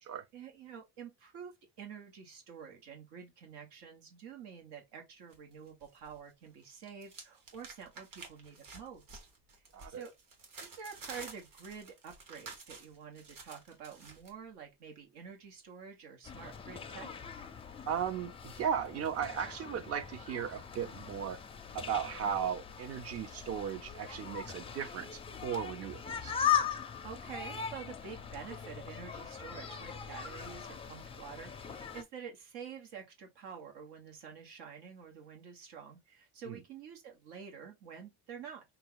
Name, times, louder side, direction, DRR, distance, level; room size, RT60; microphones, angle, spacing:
voice 1, 0.0-1.5 1.8-9.2 9.5-10.1 10.6-17.1 22.2-22.3 27.0-38.6, right 7 dB, 80° right, 1.6 m, -48 dB
sound 1, 5.3-6.2 6.5-14.3, right 4 dB, 55° right, 1.6 m, -51 dB
voice 2, 9.7-10.1 17.9-21.4 21.7-26.4 36.5-36.6, right 8 dB, 35° right, 0.5 m, -36 dB
sound 2, 16.2-32.0, left 8 dB, 15° left, 0.4 m, -39 dB
5.5 x 2.4 x 3.7 m
cardioid pair, 150°, 40 cm